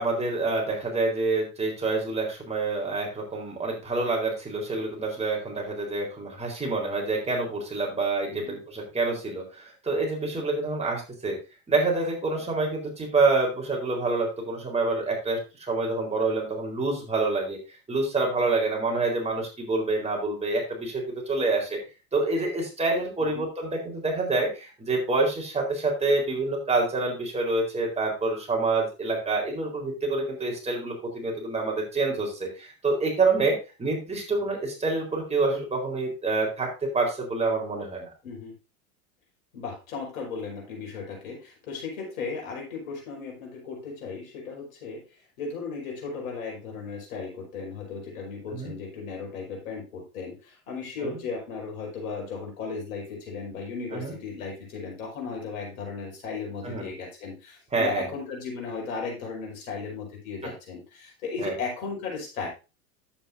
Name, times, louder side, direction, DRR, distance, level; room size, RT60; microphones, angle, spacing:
voice 1, 0.0-11.4 11.7-17.6 17.9-21.8 22.1-38.1 48.5-48.7 51.0-51.1 53.9-54.1 56.6-56.9 57.7-58.1 61.4-61.5, right 3 dB, 15° right, -1 dB, 4.2 m, -27 dB
voice 2, 38.2-38.5 39.5-62.5, left 4 dB, 65° left, -1 dB, 5.1 m, -36 dB
11.0 x 8.6 x 2.7 m, 0.29 s
hypercardioid pair, 95°, 44 cm